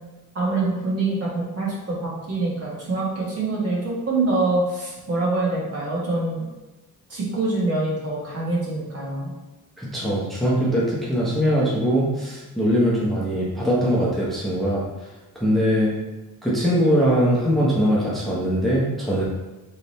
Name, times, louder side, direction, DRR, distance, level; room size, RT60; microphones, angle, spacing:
voice 1, 0.3-6.4 7.1-9.3, right 2 dB, 45° right, -5 dB, 1.5 m, -25 dB
voice 2, 9.8-14.8 15.4-15.9 16.4-19.2, equal, ahead, -7 dB, 0.9 m, -21 dB
3.6 x 3.3 x 4.1 m, 1.1 s
cardioid pair, 120°, 33 cm